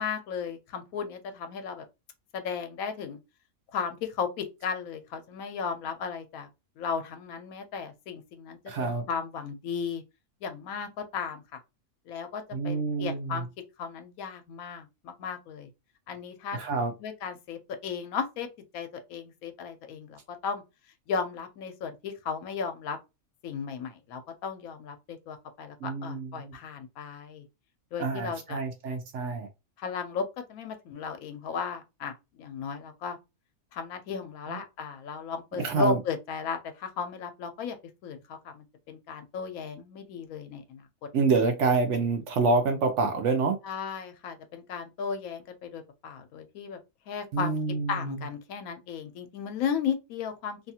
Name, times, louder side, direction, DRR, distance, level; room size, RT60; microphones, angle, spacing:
voice 1, 0.0-1.8 2.3-3.2 3.7-6.5 6.8-10.0 10.4-11.4 12.1-13.5 13.8-15.7 16.1-16.6 17.0-18.5 18.7-20.6 21.1-23.0 23.4-27.5 27.9-28.6 29.8-33.2 33.7-37.8 38.0-40.8 43.6-46.8 47.1-47.5 47.9-50.6, left 6 dB, 80° left, 1.0 m, -35 dB
voice 2, 8.7-9.0 12.5-13.4 16.5-16.9 25.8-26.6 28.0-29.5 34.5-34.6 35.5-36.0 41.1-43.6 47.3-48.2, right 4 dB, 65° right, 0.8 m, -27 dB
2.6 x 2.4 x 2.7 m
omnidirectional pair, 1.5 m